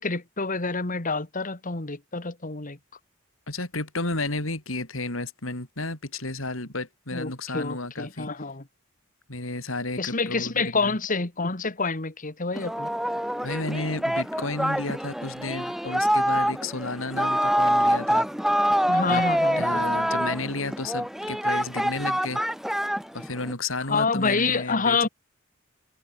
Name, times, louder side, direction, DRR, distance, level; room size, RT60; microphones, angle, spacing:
voice 1, 0.0-2.8 7.1-8.6 10.0-12.9 18.9-19.7 23.9-25.1, left 4 dB, 40° left, 2.0 m, -27 dB
voice 2, 3.5-8.3 9.3-11.0 13.4-18.3 19.1-19.2 19.6-22.4 23.1-25.1, left 2 dB, 75° left, 4.7 m, -32 dB
Singing, 12.5-23.5, equal, ahead, 1.2 m, -26 dB
head